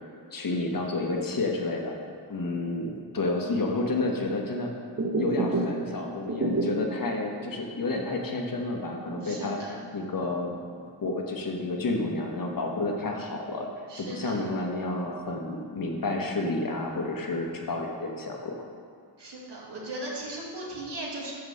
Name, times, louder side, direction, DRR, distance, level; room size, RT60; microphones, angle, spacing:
voice 1, 0.3-1.9 2.3-4.7 5.2-10.5 11.0-13.7 14.0-18.5, left 2 dB, 50° left, 1 dB, 1.1 m, -30 dB
sound 1, 4.9-5.9 6.2-7.0 7.4-7.5 7.9-8.0 8.5-9.9 10.3-10.9, right 2 dB, 35° right, 0.8 m, -29 dB
voice 2, 9.2-9.7 13.9-14.4 19.2-21.3, right 1 dB, 75° right, -3 dB, 1.8 m, -37 dB
7.4 x 4.8 x 6.4 m, 2.3 s
wide cardioid pair, 110°, 42 cm